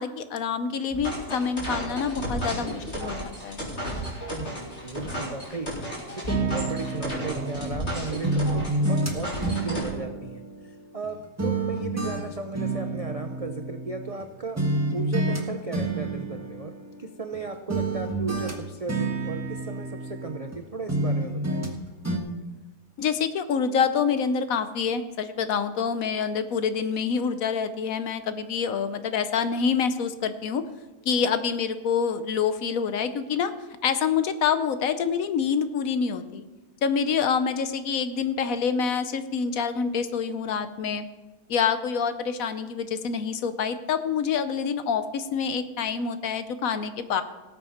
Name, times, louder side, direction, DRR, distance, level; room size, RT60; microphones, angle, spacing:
voice 1, 0.0-3.6 23.0-30.6 31.0-33.5 33.8-36.4 36.8-41.0 41.5-47.2, left 6 dB, 65° left, 11 dB, 1.1 m, -26 dB
sound 1, 0.9-9.9, equal, 40° left, 4.2 m, -33 dB
voice 2, 4.3-5.7 6.2-14.6 14.9-16.7 17.0-21.6, right 3 dB, 65° right, 5 dB, 0.3 m, -36 dB
sound 2, 6.3-7.9 8.2-11.1 11.4-14.3 14.6-15.4 15.7-17.4 17.7-20.6 20.9-21.8 22.0-22.2, right 2 dB, 10° right, 1.3 m, -29 dB
18.0 x 7.9 x 4.3 m, 1.2 s
omnidirectional pair, 1.7 m